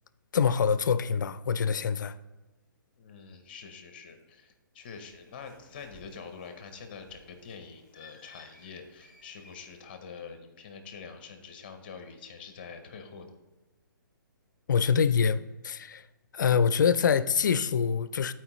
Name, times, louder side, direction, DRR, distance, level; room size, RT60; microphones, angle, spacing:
voice 1, 0.3-2.2 14.7-16.1 16.3-18.3, left 6 dB, 60° left, 0.4 m, -25 dB
voice 2, 3.0-13.3, left 5 dB, 25° left, 0.7 m, -45 dB
Bird, 4.8-9.8, left 3 dB, 5° right, 1.2 m, -57 dB
12.5 x 4.5 x 3.1 m
hypercardioid pair, 175°, 11 cm